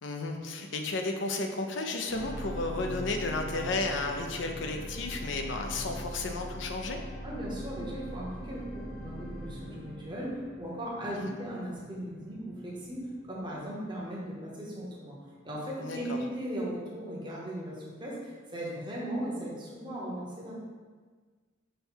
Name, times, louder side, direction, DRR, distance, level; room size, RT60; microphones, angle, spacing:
voice 1, 0.0-7.0 11.2-11.4 15.8-16.2, left 3 dB, 65° left, 4 dB, 0.5 m, -33 dB
sound 1, 2.1-14.5 15.0-15.1, equal, 85° left, 0.9 m, -42 dB
voice 2, 7.2-13.0 13.3-15.2 15.4-20.5, right 1 dB, 25° right, -5 dB, 0.9 m, -37 dB
5.4 x 2.2 x 4.4 m, 1.5 s
head